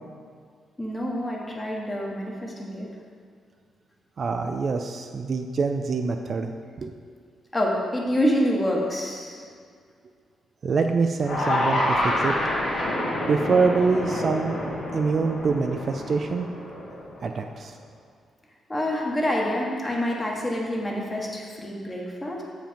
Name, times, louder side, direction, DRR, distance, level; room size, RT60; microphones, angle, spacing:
voice 1, 0.8-2.9 7.5-9.4 18.7-22.4, equal, 15° left, -2 dB, 1.3 m, -27 dB
voice 2, 4.2-6.5 6.8-6.9 10.6-12.3 13.3-14.6 14.9-16.5 17.2-17.7, right 4 dB, 45° right, 5 dB, 0.4 m, -25 dB
sound 1, 11.2-17.5, left 1 dB, 70° left, 1.7 m, -28 dB
7.5 x 5.0 x 5.2 m, 2.1 s
cardioid pair, 120°, 0 cm